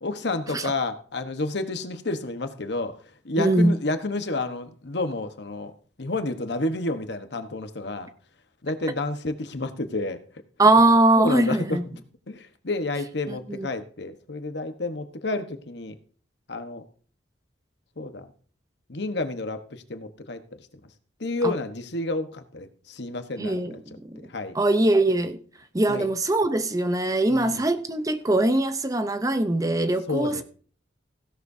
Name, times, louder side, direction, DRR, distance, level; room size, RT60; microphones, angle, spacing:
voice 1, 0.0-5.7 6.0-8.1 8.6-10.4 11.2-12.0 12.3-16.0 16.5-16.8 18.0-18.3 18.9-20.7 21.2-23.8 24.3-24.6 25.9-26.1 27.3-27.7 30.1-30.4, left 2 dB, 65° left, 1.2 m, -30 dB
voice 2, 3.4-3.8 10.6-11.8 13.5-13.7 21.4-21.5 23.4-24.2 24.5-25.4 25.7-30.4, right 2 dB, 20° right, 0.7 m, -21 dB
16.0 x 11.5 x 2.7 m
head